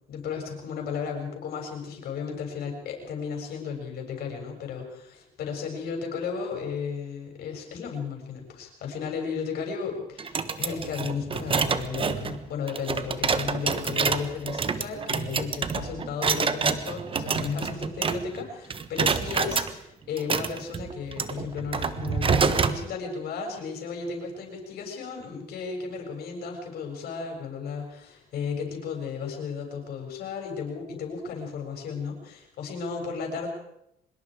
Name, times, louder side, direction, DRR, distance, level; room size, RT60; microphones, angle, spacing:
voice 1, 0.1-33.5, left 6 dB, 65° left, 2 dB, 7.2 m, -34 dB
sound 1, 10.2-18.4 18.7-19.7 20.2-22.8, right 5 dB, 30° right, 1.3 m, -27 dB
24.5 x 21.5 x 5.0 m, 0.81 s
cardioid pair, 110°, 17 cm